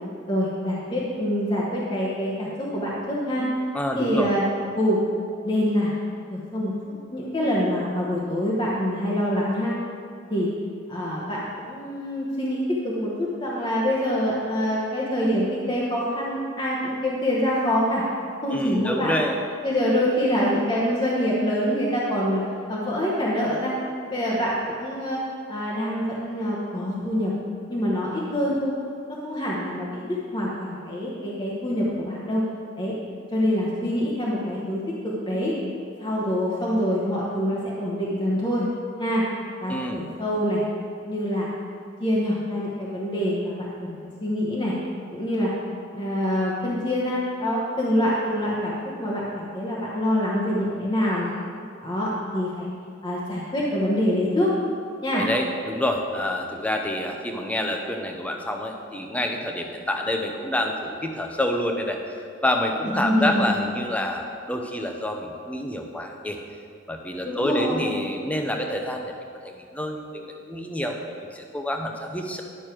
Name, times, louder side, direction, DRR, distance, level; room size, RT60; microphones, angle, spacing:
voice 1, 0.3-3.4 3.9-4.4 4.7-5.0 5.4-5.9 6.3-6.7 7.1-9.7 10.3-10.5 10.9-18.0 18.4-19.1 19.6-23.7 24.1-25.2 25.5-27.3 27.7-28.7 29.2-30.0 30.3-32.4 32.8-32.9 33.3-35.5 36.0-38.6 39.0-39.2 39.6-40.6 41.0-41.5 42.0-44.7 45.1-45.5 45.9-51.3 51.8-52.7 53.0-54.5 55.0-55.3 62.8-63.5 67.2-67.9, equal, 25° left, -5 dB, 1.0 m, -25 dB
voice 2, 3.7-4.3 18.5-19.4 39.7-40.0 55.1-66.4 66.9-69.1 69.4-72.4, left 1 dB, 5° left, 3 dB, 0.7 m, -28 dB
10.5 x 6.3 x 4.5 m, 2.3 s
head